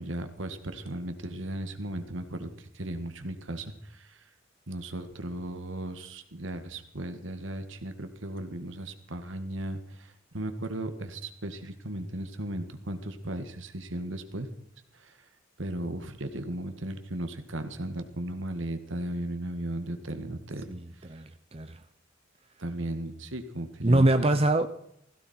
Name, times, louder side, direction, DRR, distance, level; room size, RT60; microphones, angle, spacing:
voice 1, 0.0-4.2 4.7-14.5 14.9-15.2 15.6-20.7 22.6-24.3, right 1 dB, 70° right, 8 dB, 1.9 m, -36 dB
voice 2, 20.7-21.2 21.5-21.8 23.8-24.7, right 1 dB, 30° right, 9 dB, 0.7 m, -23 dB
16.5 x 16.0 x 4.4 m, 0.71 s
head